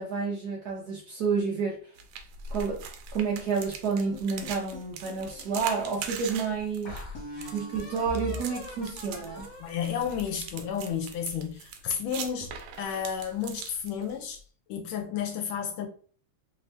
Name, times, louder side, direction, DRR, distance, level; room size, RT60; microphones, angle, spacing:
voice 1, 0.0-1.8 2.5-2.8 3.1-7.0 7.5-9.5, right 5 dB, 65° right, 1.1 m, -30 dB
sound 1, 2.0-14.4, right 5 dB, 85° right, 1.4 m, -42 dB
sound 2, 4.1-5.7 6.2-6.3 6.8-11.0, left 2 dB, 60° left, 1.6 m, -42 dB
voice 2, 9.6-14.4 14.7-15.9, left 8 dB, 85° left, 1.4 m, -32 dB
3.5 x 2.7 x 3.1 m
omnidirectional pair, 2.2 m